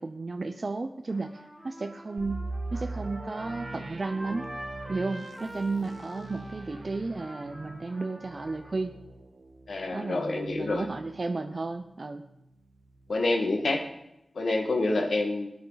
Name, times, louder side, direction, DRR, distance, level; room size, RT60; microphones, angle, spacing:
voice 1, 0.0-4.5 4.9-8.9 9.9-12.2, right 3 dB, 45° right, 7 dB, 0.7 m, -33 dB
Trumpet, 1.1-8.7, right 1 dB, 15° right, 2.7 m, -45 dB
sound 1, 2.2-11.9 12.2-12.3 12.9-13.1, right 2 dB, 85° right, 1.8 m, -42 dB
voice 2, 9.7-10.9 13.1-13.8 14.4-15.5, left 2 dB, 80° left, 4 dB, 1.7 m, -27 dB
19.0 x 9.3 x 4.0 m, 0.85 s
wide cardioid pair, 110°, 0 cm